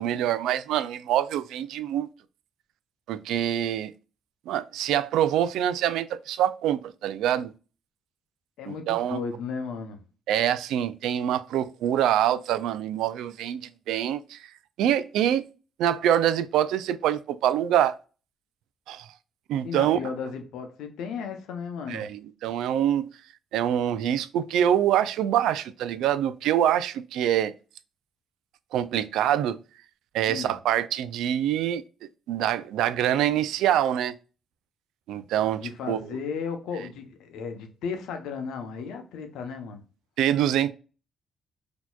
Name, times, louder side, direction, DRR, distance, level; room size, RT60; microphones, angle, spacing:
voice 1, 0.0-2.1 3.1-3.9 4.5-7.5 8.7-9.2 10.3-14.4 14.8-15.4 15.8-17.9 18.9-19.1 19.5-20.0 21.9-23.1 23.5-27.5 28.7-29.6 30.1-31.8 32.3-34.1 35.1-36.0 40.2-40.7, right 10 dB, 90° right, 0.3 m, -25 dB
voice 2, 8.6-10.0 19.6-22.1 30.3-30.5 35.6-39.8, left 5 dB, 85° left, 0.8 m, -35 dB
4.2 x 2.8 x 2.3 m
cardioid pair, 90°, 0 cm